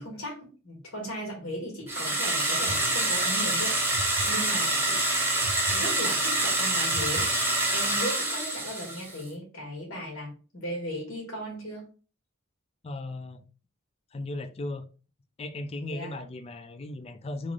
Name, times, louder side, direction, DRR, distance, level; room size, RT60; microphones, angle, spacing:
voice 1, 0.0-5.0 5.7-11.8 15.9-16.2, equal, 75° left, 1.5 m, -37 dB
sound 1, 1.9-9.2, right 2 dB, 10° right, 0.7 m, -26 dB
sound 2, 2.7-8.0, right 1 dB, 70° right, 0.6 m, -42 dB
voice 2, 12.8-13.4 14.1-14.9 15.4-17.5, left 2 dB, 30° left, 0.3 m, -36 dB
3.2 x 2.5 x 3.6 m
head